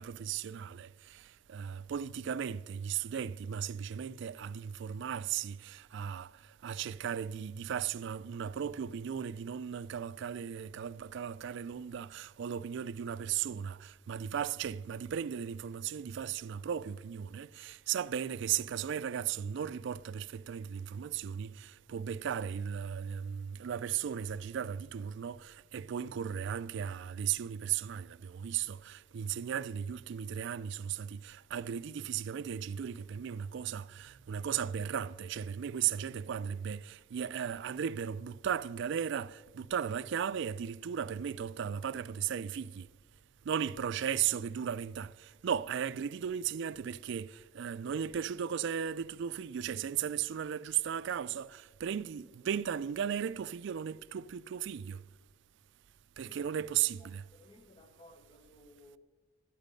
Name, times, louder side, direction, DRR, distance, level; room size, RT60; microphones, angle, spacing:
voice 1, 0.0-6.3 6.6-42.9 43.5-55.0 56.2-57.2, right 8 dB, 65° right, 0.3 m, -36 dB
voice 2, 56.2-56.7 57.0-59.0, left 1 dB, 25° left, 0.9 m, -59 dB
13.0 x 10.0 x 5.2 m
head